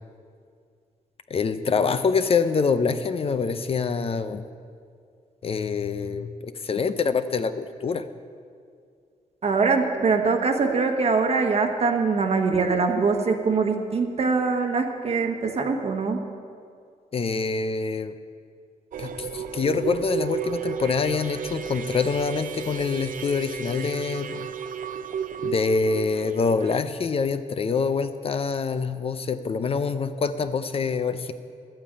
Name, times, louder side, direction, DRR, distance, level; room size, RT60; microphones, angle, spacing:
voice 1, 1.3-4.5 5.4-8.0 17.1-18.1 19.0-24.5 25.4-31.3, left 5 dB, 40° left, 11 dB, 0.6 m, -25 dB
voice 2, 9.4-16.3, right 4 dB, 45° right, 3 dB, 1.2 m, -23 dB
sound 1, 18.9-26.8, right 8 dB, 65° right, 0.6 m, -33 dB
12.0 x 8.9 x 8.7 m, 2.2 s
cardioid pair, 125°, 15 cm